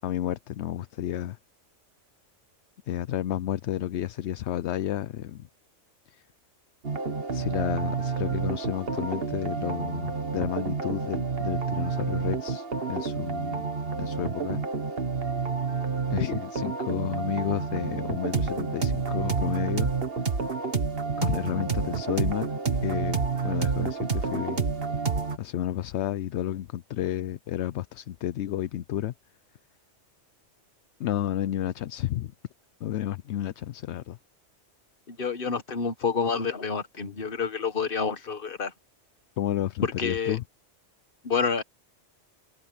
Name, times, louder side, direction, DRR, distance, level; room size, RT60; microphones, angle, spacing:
voice 1, 0.0-1.4 2.9-5.5 6.1-6.2 7.3-13.7 14.0-14.6 16.1-19.9 21.2-22.5 22.8-24.6 25.4-29.1 31.0-32.3 32.8-34.2 39.4-40.4, left 12 dB, 70° left, 0.8 m, -31 dB
sound 1, 6.8-25.4, right 5 dB, 50° right, 1.8 m, -29 dB
voice 2, 35.1-38.7 40.0-40.4 41.2-41.6, left 5 dB, 45° left, 1.5 m, -28 dB
omnidirectional pair, 1.3 m